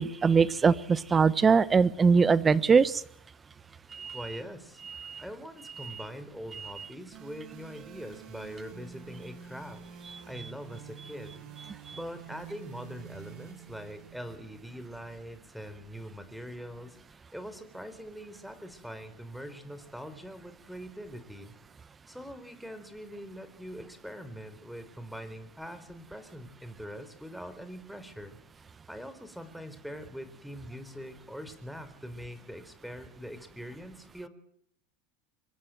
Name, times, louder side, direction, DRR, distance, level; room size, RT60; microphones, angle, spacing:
voice 1, 0.0-3.0 3.9-4.2 4.9-5.2 11.9-12.0, right 5 dB, 25° right, 17 dB, 1.2 m, -22 dB
voice 2, 4.1-4.8 5.2-11.5 11.9-21.5 22.1-28.4 28.9-34.3, equal, ahead, 12 dB, 4.3 m, -43 dB
sound 1, 7.1-15.1, right 8 dB, 55° right, 7.3 m, -48 dB
25.5 x 21.5 x 7.8 m, 0.70 s
hypercardioid pair, 100°, 0 cm